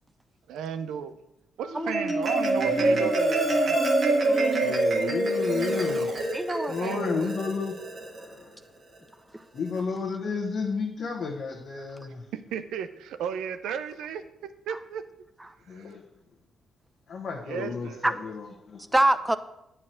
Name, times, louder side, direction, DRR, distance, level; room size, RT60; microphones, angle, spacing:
voice 1, 0.5-1.2 1.6-3.8 6.8-7.3 12.3-15.0 15.7-15.9 17.4-18.0, right 8 dB, 80° right, 10 dB, 0.6 m, -35 dB
Marimba xylophone, 1.6-8.2, right 2 dB, 55° right, 1.9 m, -25 dB
voice 2, 2.7-3.1 4.6-6.1 6.7-8.6 9.5-12.2 15.7-16.0 17.1-18.9, left 5 dB, 60° left, -2 dB, 1.3 m, -32 dB
voice 3, 4.2-4.8 6.3-7.4 9.3-9.4 14.7-14.8 18.0-18.1 18.9-19.4, right 1 dB, 10° right, 12 dB, 0.6 m, -27 dB
8.7 x 4.7 x 7.5 m, 0.87 s
supercardioid pair, 50°, 0 cm